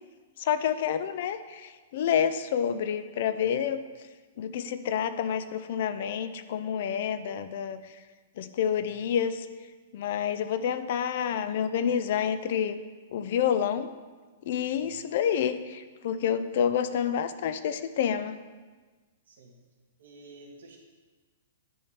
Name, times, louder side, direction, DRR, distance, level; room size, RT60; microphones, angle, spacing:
voice 1, 0.4-3.8 4.4-7.8 8.4-9.5 9.9-12.8 13.1-13.9 14.5-18.4, left 8 dB, 55° left, 12 dB, 0.5 m, -28 dB
voice 2, 14.7-15.0 19.3-19.5 20.0-20.8, right 2 dB, 80° right, 1 dB, 2.0 m, -52 dB
10.0 x 3.6 x 6.1 m, 1.3 s
hypercardioid pair, 160°, 0 cm